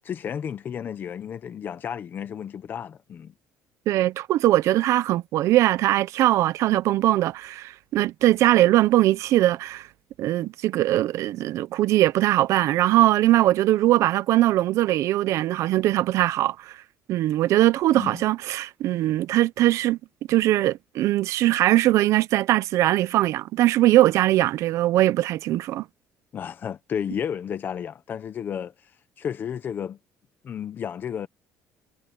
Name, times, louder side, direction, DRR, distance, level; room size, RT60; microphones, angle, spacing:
voice 1, 0.0-3.3 17.9-18.2 26.3-28.7 29.2-30.0 30.4-31.3, left 8 dB, 35° left, 1.0 m, -32 dB
voice 2, 3.9-9.9 10.2-16.7 17.1-20.0 20.3-25.8, right 15 dB, 65° right, 0.7 m, -21 dB
cardioid pair, 150°, 5 cm